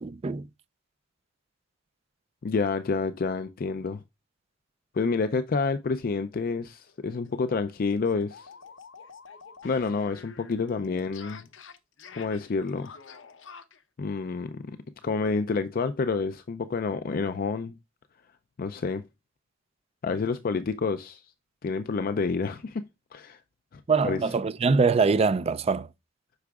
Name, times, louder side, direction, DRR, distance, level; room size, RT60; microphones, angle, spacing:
voice 1, 0.0-0.4 23.9-25.9, right 4 dB, 30° right, 0.4 m, -23 dB
voice 2, 2.4-4.0 4.9-8.5 9.6-11.5 12.1-12.9 14.0-14.7 15.0-17.7 18.6-19.0 20.0-21.2 21.6-22.8 23.1-23.4 23.7-24.2, left 4 dB, 50° left, 0.4 m, -28 dB
sound 1, 6.8-7.0 7.2-7.3 7.7-13.8, left 5 dB, 75° left, 0.8 m, -48 dB
8.0 x 5.9 x 2.4 m
head